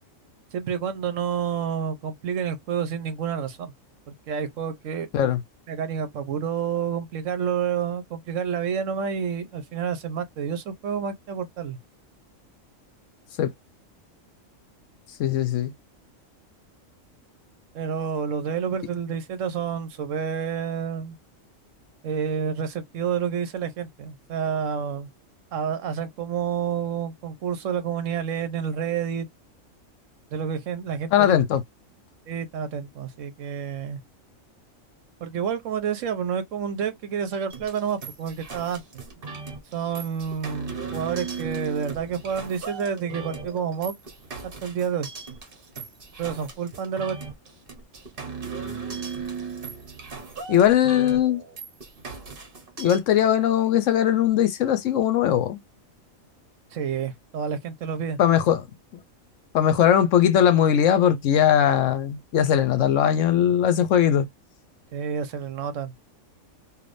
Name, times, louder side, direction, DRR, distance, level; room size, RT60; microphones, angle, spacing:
voice 1, 0.5-3.7 4.1-5.3 5.7-11.8 17.7-21.2 22.0-25.1 25.5-29.3 30.3-31.4 32.3-34.0 35.2-39.0 39.7-43.9 44.6-45.1 46.2-47.2 56.7-58.2 64.9-65.9, right 7 dB, 70° right, 1.1 m, -29 dB
voice 2, 15.2-15.7 31.1-31.6 50.5-51.4 52.8-55.6 58.2-58.6 59.5-64.3, left 10 dB, 70° left, 1.0 m, -20 dB
sound 1, 37.5-53.0, right 5 dB, 45° right, 1.2 m, -37 dB
3.3 x 2.6 x 2.6 m
omnidirectional pair, 1.4 m